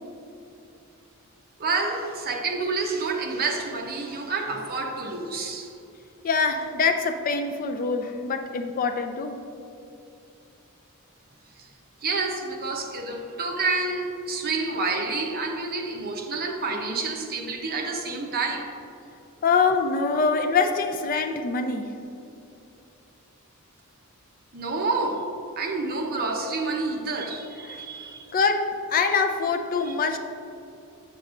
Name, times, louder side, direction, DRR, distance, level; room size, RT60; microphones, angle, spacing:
voice 1, 1.6-5.7 12.0-18.6 24.5-25.2 25.6-28.3 29.8-29.9, right 3 dB, 45° right, 2 dB, 0.7 m, -28 dB
voice 2, 6.2-9.4 19.4-21.9 28.3-30.2, left 4 dB, 40° left, 6 dB, 0.4 m, -24 dB
8.1 x 6.5 x 2.5 m, 2.8 s
head